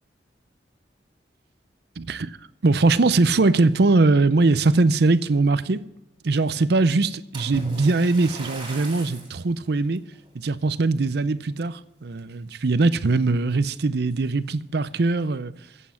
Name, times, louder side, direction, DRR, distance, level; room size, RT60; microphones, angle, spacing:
voice 1, 2.0-2.4 2.6-5.8 6.2-10.0 10.3-15.5, right 3 dB, 65° right, 0.6 m, -21 dB
Splash splatter, 7.3-9.4 10.0-10.3 10.9-11.0, right 2 dB, 30° right, 4.0 m, -37 dB
14.5 x 8.4 x 5.7 m
head